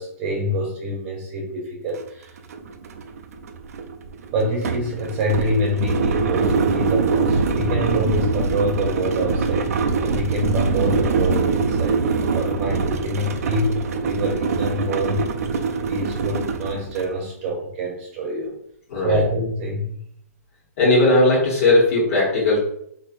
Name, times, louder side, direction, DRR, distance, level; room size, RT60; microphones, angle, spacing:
voice 1, 0.0-2.3 4.3-15.2 15.7-18.5 19.0-20.0, equal, 35° right, -1 dB, 0.9 m, -26 dB
sound 1, 2.0-2.1 2.4-17.1, right 4 dB, 65° right, 0.4 m, -23 dB
voice 2, 18.9-19.2 20.8-22.6, left 2 dB, 50° left, -6 dB, 1.2 m, -17 dB
3.8 x 2.7 x 2.5 m, 0.71 s
hypercardioid pair, 130°, 9 cm